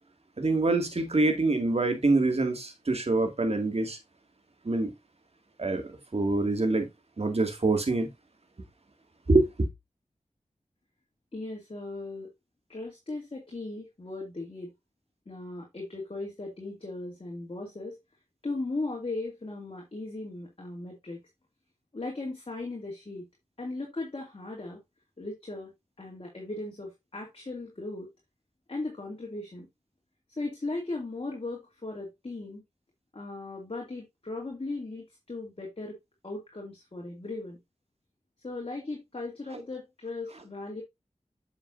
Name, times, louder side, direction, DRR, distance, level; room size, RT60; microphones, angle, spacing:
voice 1, 0.4-4.0 4.6-4.9 5.6-5.8 6.1-6.9 7.2-8.1 9.3-9.7, right 2 dB, 55° right, 2.2 m, -25 dB
voice 2, 11.3-12.3 12.7-14.7 15.3-18.0 18.4-21.2 21.9-23.2 23.6-24.8 25.2-25.7 26.0-28.1 28.7-29.7 30.4-32.6 33.1-36.0 36.2-37.6 38.4-40.8, left 2 dB, 45° left, 2.5 m, -37 dB
7.9 x 6.8 x 2.6 m
cardioid pair, 45°, 13 cm